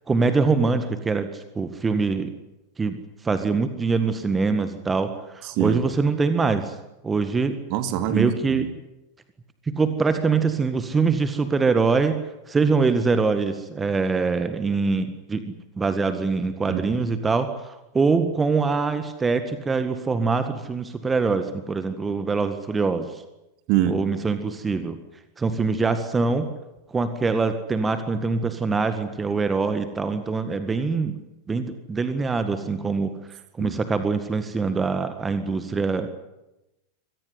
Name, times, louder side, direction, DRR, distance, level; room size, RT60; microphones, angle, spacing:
voice 1, 0.1-2.3 2.8-3.0 3.2-6.7 7.0-7.5 8.1-8.7 9.7-15.4 15.8-23.2 23.9-25.0 25.4-26.5 26.9-31.2 31.5-33.1 33.6-36.1, right 4 dB, 15° right, 10 dB, 1.8 m, -24 dB
voice 2, 7.7-8.6 16.7-17.1 23.7-24.0 33.6-33.8, right 11 dB, 45° right, 9 dB, 2.4 m, -24 dB
25.5 x 18.0 x 9.7 m, 0.96 s
figure-of-eight pair, 90°, 0 cm